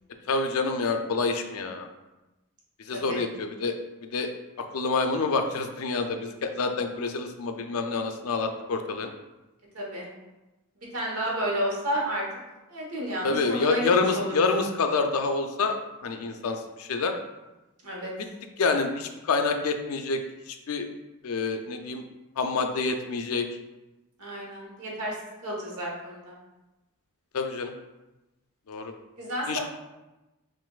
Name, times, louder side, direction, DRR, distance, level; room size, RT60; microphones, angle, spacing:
voice 1, 0.3-1.9 2.8-3.8 4.1-4.3 4.6-9.1 13.2-17.2 18.6-20.2 20.5-20.9 21.2-22.0 22.4-23.5 27.3-27.7 28.7-28.9 29.5-29.6, left 4 dB, 80° left, 6 dB, 0.4 m, -27 dB
voice 2, 2.9-3.2 9.7-10.1 10.9-12.2 12.7-13.9 14.1-14.3 17.8-18.1 24.2-25.1 25.4-26.3 29.2-29.6, equal, 90° right, -2 dB, 1.1 m, -31 dB
5.9 x 2.5 x 2.3 m, 1.0 s
head